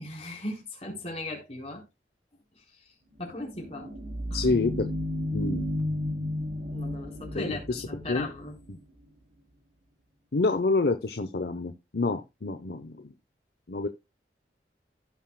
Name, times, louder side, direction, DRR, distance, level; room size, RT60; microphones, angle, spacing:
voice 1, 0.0-1.8 2.5-2.6 3.2-3.9 4.3-4.4 6.7-8.6, left 2 dB, 35° left, 3.8 m, -37 dB
sound 1, 3.3-8.8, left 1 dB, 70° right, 3.1 m, -33 dB
voice 2, 4.3-4.9 5.3-5.7 7.4-8.3 8.7-8.8 10.3-13.1 13.7-13.9, left 3 dB, 60° left, 0.8 m, -28 dB
16.0 x 5.9 x 2.2 m
head